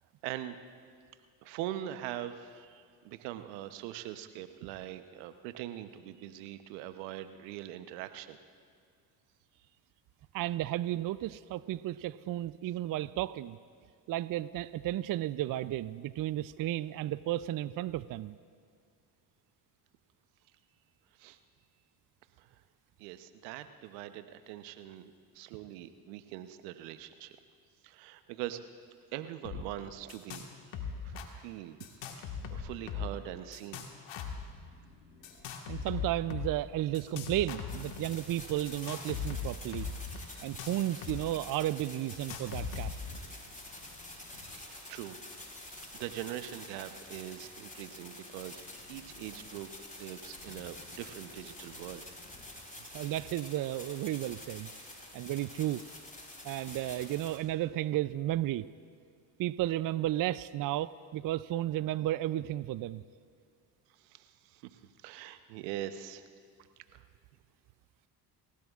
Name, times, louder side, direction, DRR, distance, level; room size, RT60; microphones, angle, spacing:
voice 1, 0.2-0.6 1.4-8.4 21.2-21.4 22.4-22.5 23.0-27.4 27.8-28.6 29.1-30.8 31.0-31.8 32.2-33.8 44.7-45.2 45.9-48.6 48.9-49.7 50.0-52.1 64.0-66.2 66.9-67.0, right 12 dB, 80° right, 10 dB, 0.9 m, -42 dB
voice 2, 10.3-13.6 14.1-18.3 35.7-39.9 40.4-42.9 52.9-54.7 55.1-55.8 56.4-58.6 59.4-63.0, right 14 dB, 45° right, 16 dB, 0.5 m, -33 dB
sound 1, 29.4-29.6 29.9-30.5 30.7-31.3 31.8-33.2 33.5-34.4 35.2-36.5 36.9-38.0 38.7-41.2 41.4-41.5 42.1-43.2, left 7 dB, 60° left, 1.7 m, -39 dB
sound 2, 34.3-37.3 38.2-40.9 42.2-44.8 45.7-49.7 50.2-52.7, left 3 dB, 80° left, 3.7 m, -59 dB
sound 3, 37.7-57.4, left 1 dB, 15° left, 4.0 m, -48 dB
26.5 x 16.5 x 2.5 m, 2.2 s
hypercardioid pair, 55°, 49 cm